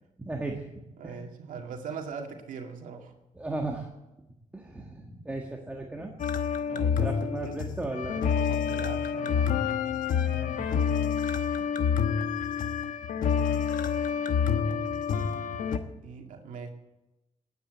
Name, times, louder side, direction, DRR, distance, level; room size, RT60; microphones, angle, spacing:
voice 1, 0.2-1.3 3.3-3.9 4.5-6.1 6.7-8.2 10.3-10.7, right 2 dB, 10° right, 1 dB, 1.5 m, -36 dB
voice 2, 1.0-3.1 6.7-7.1 7.4-7.6 8.4-9.7 14.4-15.2 15.6-16.7, right 6 dB, 85° right, 3 dB, 2.1 m, -41 dB
sound 1, 6.2-15.8, left 7 dB, 90° left, 1.1 m, -28 dB
19.0 x 9.3 x 8.0 m, 0.97 s
wide cardioid pair, 145°, 13 cm